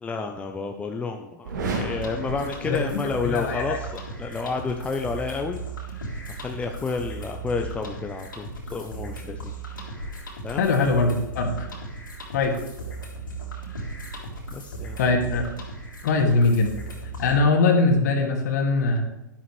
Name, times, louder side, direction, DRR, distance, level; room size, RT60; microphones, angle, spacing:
voice 1, 0.0-5.6 6.4-9.5 10.4-10.8 14.5-15.0, left 4 dB, 10° left, 3 dB, 0.7 m, -30 dB
sound 1, 1.4-3.4, right 3 dB, 65° right, 2.3 m, -33 dB
sound 2, 1.9-17.4, right 2 dB, 85° left, 3.3 m, -37 dB
voice 2, 2.6-3.8 10.6-11.7 12.3-12.6 15.0-15.4 16.0-16.7 17.2-19.0, left 3 dB, 60° left, 3 dB, 2.2 m, -22 dB
12.0 x 11.5 x 3.3 m, 0.96 s
figure-of-eight pair, 105°, 11 cm